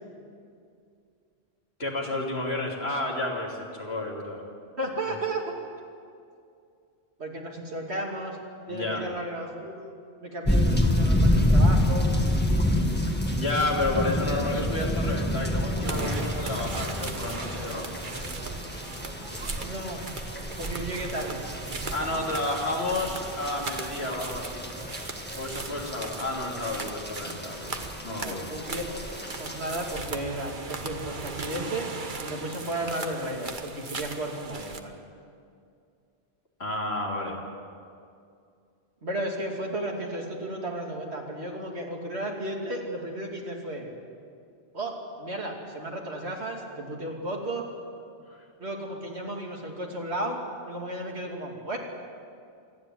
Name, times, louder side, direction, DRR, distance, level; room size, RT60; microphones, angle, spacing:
voice 1, 1.8-4.4 8.7-9.1 13.4-17.9 21.9-24.6 25.4-27.8 28.0-28.5 36.6-37.4 48.3-48.4, left 2 dB, 70° left, -1 dB, 3.3 m, -31 dB
voice 2, 4.8-5.5 7.2-8.4 8.7-10.0 10.2-12.1 19.6-20.0 20.6-21.4 28.1-29.1 29.4-31.9 32.2-35.0 39.0-43.9 44.7-47.7 48.6-50.4 50.7-51.8, right 1 dB, 75° right, 0 dB, 3.0 m, -34 dB
sound 1, 10.4-30.0, left 1 dB, 10° left, 1.7 m, -28 dB
sound 2, 15.8-34.8, right 3 dB, 50° right, 1.4 m, -38 dB
27.0 x 10.5 x 9.4 m, 2.4 s
omnidirectional pair, 1.1 m